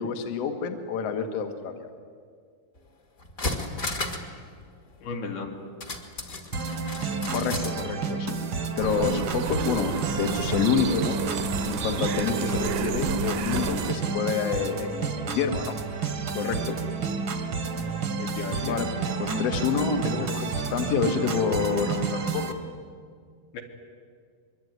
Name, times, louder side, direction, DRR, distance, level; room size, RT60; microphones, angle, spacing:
voice 1, 0.0-1.9 7.3-8.4 8.7-11.2 11.6-16.0 16.3-16.8 18.6-18.9 19.2-22.5, left 6 dB, 50° left, 6 dB, 2.3 m, -28 dB
sound 1, 2.8-2.9 3.2-4.3 4.6-4.7 5.8-7.8 8.1-8.2, left 2 dB, 30° left, 1.8 m, -33 dB
voice 2, 5.0-5.6 18.2-18.8 23.5-23.6, left 4 dB, 80° left, 2 dB, 4.5 m, -34 dB
sound 2, 6.5-22.5, right 4 dB, 45° right, 1.8 m, -30 dB
sound 3, 8.8-13.9, right 7 dB, 70° right, 2.8 m, -31 dB
24.5 x 23.0 x 9.6 m, 2.1 s
omnidirectional pair, 4.4 m